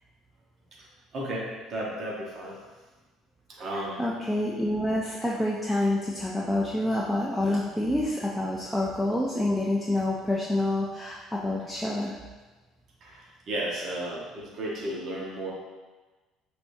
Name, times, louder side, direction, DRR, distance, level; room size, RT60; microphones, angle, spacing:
voice 1, 1.1-2.6 3.6-4.0 13.0-15.5, right 1 dB, 40° right, -4 dB, 0.9 m, -34 dB
voice 2, 3.7-12.1, left 1 dB, ahead, -5 dB, 0.4 m, -27 dB
6.0 x 3.3 x 2.6 m, 1.2 s
cardioid pair, 140°, 0 cm